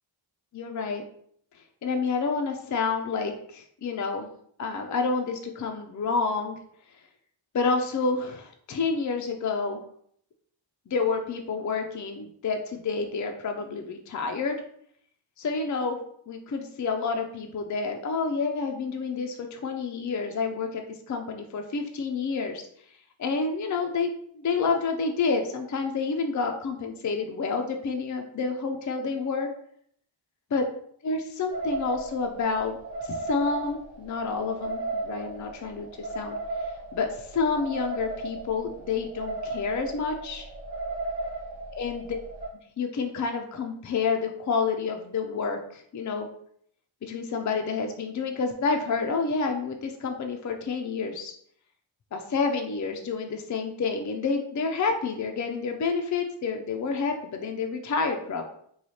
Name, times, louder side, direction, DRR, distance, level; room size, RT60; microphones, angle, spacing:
voice 1, 0.5-1.0 1.8-4.3 4.6-6.6 7.5-9.8 10.9-14.6 15.4-16.0 16.3-22.7 23.2-29.5 30.5-30.6 31.0-32.8 33.1-36.4 36.9-40.5 41.8-42.0 42.8-46.3 47.0-51.3 52.1-58.4, left 4 dB, 40° left, 4 dB, 0.4 m, -29 dB
sound 1, 31.5-42.5, right 2 dB, 30° right, 1.3 m, -35 dB
3.1 x 2.3 x 4.1 m, 0.65 s
wide cardioid pair, 90°, 49 cm